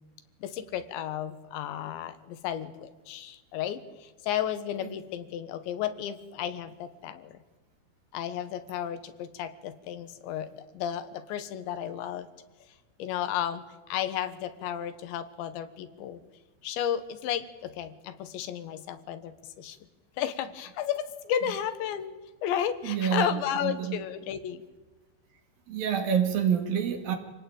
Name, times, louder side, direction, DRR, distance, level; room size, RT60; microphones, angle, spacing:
voice 1, 0.4-7.3 8.1-12.3 13.0-16.2 16.6-19.8 20.2-22.2 22.4-24.6, left 10 dB, 85° left, 11 dB, 3.7 m, -33 dB
voice 2, 22.8-24.0 25.7-27.2, right 8 dB, 60° right, 6 dB, 3.6 m, -27 dB
27.5 x 18.5 x 8.8 m, 1.3 s
omnidirectional pair, 5.1 m